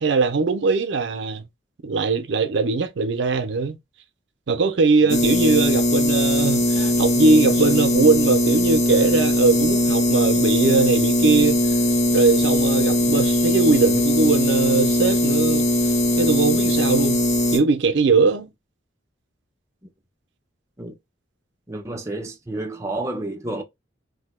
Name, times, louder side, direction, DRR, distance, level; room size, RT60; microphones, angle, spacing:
voice 1, 0.0-1.5 1.8-3.8 4.5-11.6 12.1-15.7 16.2-17.2 17.5-18.5, right 4 dB, 70° right, 0.5 m, -20 dB
sound 1, 5.1-17.6, left 1 dB, 35° left, 0.6 m, -20 dB
voice 2, 21.7-23.6, right 2 dB, 15° right, 0.5 m, -30 dB
2.7 x 2.1 x 4.0 m
head